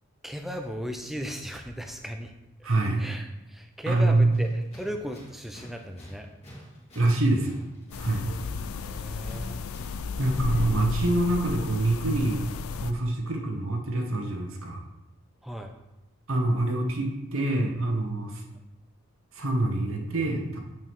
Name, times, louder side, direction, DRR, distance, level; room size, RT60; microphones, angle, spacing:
voice 1, 0.2-2.3 3.0-6.3 8.8-9.6 15.4-15.7, equal, ahead, 4 dB, 0.4 m, -36 dB
voice 2, 2.6-3.0 3.9-4.4 6.9-7.6 8.0-8.3 10.2-12.4 12.8-14.8 16.3-18.4 19.3-20.6, right 2 dB, 70° right, 2 dB, 1.1 m, -25 dB
Tools, 4.3-10.9, equal, 30° left, 2.0 m, -47 dB
sound 1, 7.9-12.9, left 5 dB, 75° left, 0.4 m, -34 dB
8.5 x 4.6 x 3.6 m, 0.95 s
head